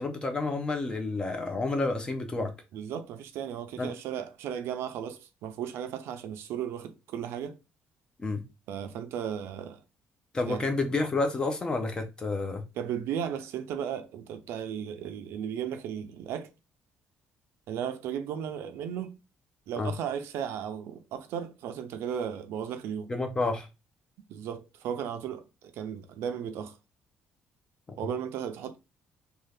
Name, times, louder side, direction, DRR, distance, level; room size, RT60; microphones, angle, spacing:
voice 1, 0.0-2.5 3.8-3.9 8.2-8.4 10.3-12.6 19.8-19.9 23.1-23.7, left 3 dB, 20° left, 0.5 m, -29 dB
voice 2, 2.7-7.6 8.7-9.8 10.5-10.6 12.8-16.5 17.7-19.1 19.7-23.1 24.3-26.8 28.0-28.8, right 8 dB, 75° right, 0.5 m, -35 dB
2.7 x 2.3 x 3.3 m
cardioid pair, 165°, 4 cm